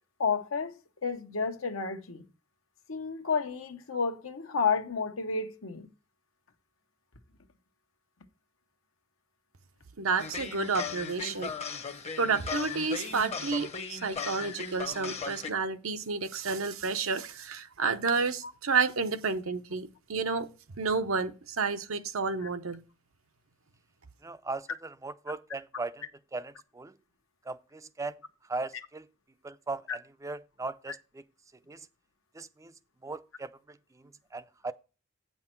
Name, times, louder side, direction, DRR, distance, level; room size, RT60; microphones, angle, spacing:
voice 1, 0.2-0.7 1.0-2.3 2.9-5.9 18.4-18.5 28.7-28.8 29.9-30.0, left 5 dB, 80° left, 1.1 m, -31 dB
voice 2, 10.0-11.5 12.2-20.5 20.8-22.8, right 4 dB, 85° right, 0.8 m, -30 dB
sound 1, 10.2-15.5, left 5 dB, 30° left, 0.8 m, -37 dB
voice 3, 24.2-26.0 26.3-26.9 27.5-28.2 28.5-29.1 29.4-31.2 31.7-31.9 32.3-32.7 33.0-33.8 34.3-34.7, right 3 dB, 15° right, 0.4 m, -38 dB
8.9 x 5.7 x 4.5 m
head